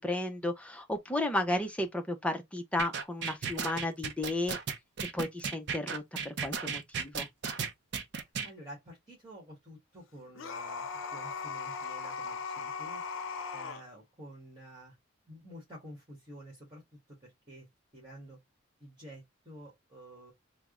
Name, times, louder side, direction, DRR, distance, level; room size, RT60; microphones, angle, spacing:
voice 1, 0.0-4.6 5.1-7.3, left 1 dB, 5° left, 0.5 m, -33 dB
sound 1, 2.8-8.5, right 6 dB, 55° right, 0.5 m, -35 dB
voice 2, 8.2-10.8 11.1-13.1 13.5-15.0 15.2-16.8 17.1-17.7 17.9-18.4 18.8-20.3, equal, 25° right, 1.3 m, -50 dB
sound 2, 10.4-13.8, left 5 dB, 70° left, 0.5 m, -38 dB
3.4 x 2.0 x 3.5 m
head